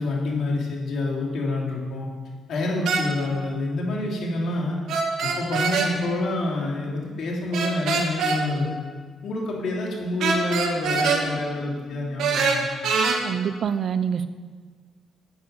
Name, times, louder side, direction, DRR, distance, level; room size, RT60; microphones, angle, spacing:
voice 1, 0.0-2.1 2.5-4.8 5.2-8.7 9.2-12.7, left 2 dB, 70° left, -2 dB, 3.1 m, -27 dB
sound 1, 2.8-3.0 4.9-5.9 7.5-8.4 10.2-11.2 12.2-13.2, right 5 dB, 75° right, 1.9 m, -23 dB
voice 2, 13.2-14.3, right 7 dB, 60° right, 12 dB, 0.7 m, -25 dB
9.8 x 9.2 x 6.9 m, 1.5 s
cardioid pair, 90°, 0 cm